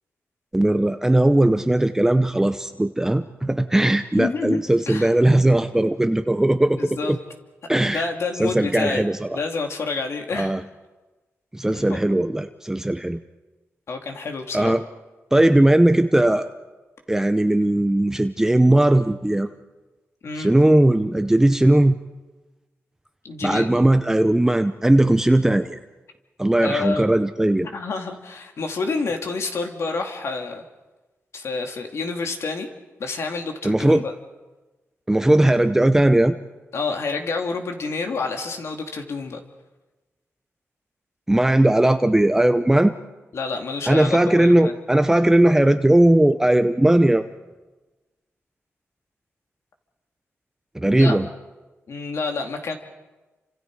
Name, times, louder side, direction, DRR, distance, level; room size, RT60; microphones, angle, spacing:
voice 1, 0.5-7.2 7.7-8.1 8.4-9.4 10.3-10.6 11.5-13.2 14.5-14.8 15.3-16.5 17.1-19.5 20.4-22.0 23.4-25.8 26.4-27.7 33.6-34.1 35.1-36.4 41.3-42.9 43.9-47.3 50.7-51.3, right 1 dB, 10° right, 9 dB, 0.8 m, -18 dB
voice 2, 4.1-4.6 4.9-5.1 6.7-7.2 7.9-9.0 9.3-10.5 11.7-12.0 13.9-14.7 20.2-20.5 23.2-23.7 26.6-27.1 27.5-30.6 31.3-32.7 33.0-34.1 36.7-39.4 43.3-44.7 51.0-51.2 51.9-52.8, left 4 dB, 70° left, 3 dB, 2.7 m, -28 dB
29.5 x 26.0 x 4.9 m, 1.2 s
wide cardioid pair, 105°, 5 cm